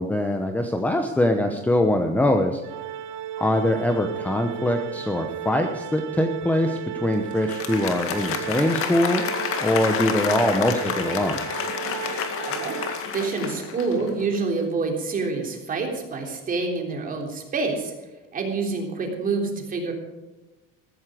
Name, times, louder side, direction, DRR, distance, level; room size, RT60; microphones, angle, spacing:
voice 1, 0.0-2.6 3.4-9.2 9.6-11.4, left 1 dB, 5° left, 5 dB, 0.9 m, -23 dB
Organ, 2.6-13.5, right 9 dB, 75° right, 1.4 m, -35 dB
Applause, 7.3-14.3, left 7 dB, 45° left, 2.0 m, -30 dB
voice 2, 13.1-17.9 18.3-19.9, right 4 dB, 25° right, 1 dB, 3.4 m, -27 dB
14.5 x 13.5 x 5.0 m, 1.1 s
cardioid pair, 150°, 31 cm